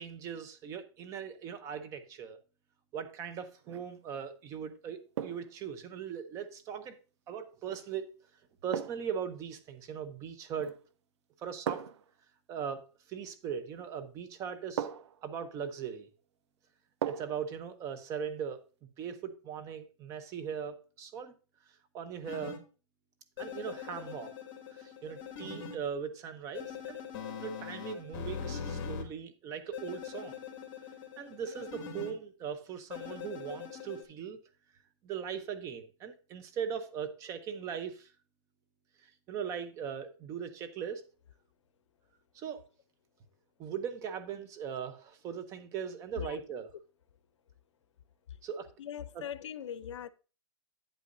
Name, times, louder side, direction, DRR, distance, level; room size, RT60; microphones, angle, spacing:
voice 1, 0.0-2.4 2.9-7.0 7.3-8.1 8.6-10.8 11.4-11.9 12.5-12.8 13.1-14.9 15.2-16.1 17.1-18.6 19.0-21.3 21.9-22.6 23.4-24.3 24.7-27.0 27.4-30.4 31.2-34.4 35.0-38.1 39.0-41.0 42.3-42.6 43.6-46.7 48.4-48.7 49.1-49.2, right 7 dB, 20° right, 0.7 m, -39 dB
sound 1, 3.6-3.9 5.2-5.6 7.7-7.9 8.7-9.2 10.5-10.9 11.7-12.1 13.8-13.9 14.8-15.2 17.0-17.5 17.8-17.9, right 9 dB, 70° right, 0.7 m, -38 dB
sound 2, 22.2-22.6 23.4-25.8 26.6-29.0 29.7-32.1 32.9-34.0, left 7 dB, 45° left, 1.9 m, -42 dB
voice 2, 48.8-50.1, left 9 dB, 80° left, 0.6 m, -40 dB
8.9 x 8.3 x 2.6 m
hypercardioid pair, 160°, 15 cm